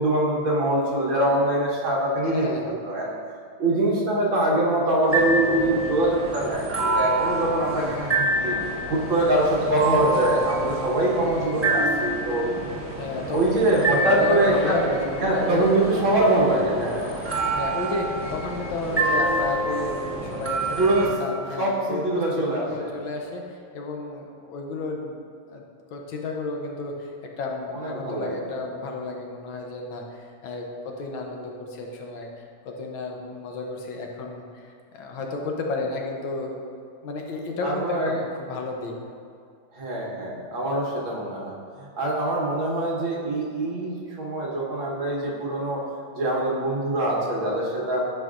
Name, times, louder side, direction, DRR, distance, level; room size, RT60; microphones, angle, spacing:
voice 1, 0.0-3.1 3.6-8.6 8.9-12.5 13.3-14.8 15.2-17.1 20.8-22.9 27.7-28.4 37.6-38.3 39.7-45.8 46.1-48.0, right 1 dB, 70° right, -4 dB, 2.0 m, -24 dB
voice 2, 2.3-2.7 13.0-13.6 13.9-15.7 17.6-25.1 25.5-25.6 25.9-27.1 27.4-36.5 37.0-38.9, left 3 dB, 75° left, 1 dB, 1.5 m, -32 dB
sound 1, 5.1-21.1, right 1 dB, 15° right, 0.5 m, -27 dB
11.5 x 4.9 x 2.5 m, 2.4 s
omnidirectional pair, 2.2 m